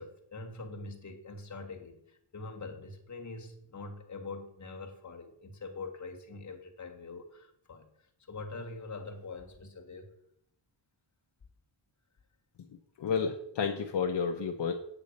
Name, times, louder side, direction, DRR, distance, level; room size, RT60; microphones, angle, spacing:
voice 1, 0.0-7.9 8.3-10.1, left 3 dB, 35° left, 3 dB, 1.6 m, -44 dB
voice 2, 13.0-14.7, left 6 dB, 60° left, 3 dB, 0.9 m, -31 dB
8.4 x 8.2 x 5.3 m, 0.74 s
wide cardioid pair, 155°, 48 cm